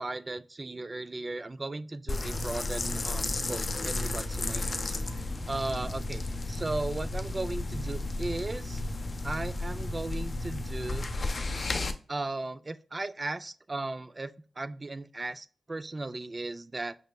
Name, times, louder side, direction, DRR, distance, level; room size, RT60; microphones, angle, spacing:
voice 1, 0.0-4.9 5.5-6.2 6.5-8.8 9.2-11.1 12.1-17.0, right 2 dB, 35° right, 14 dB, 0.3 m, -36 dB
sound 1, 2.1-11.9, left 2 dB, 45° left, 0.5 m, -33 dB
5.3 x 3.1 x 2.2 m, 0.41 s
cardioid pair, 60°, 0 cm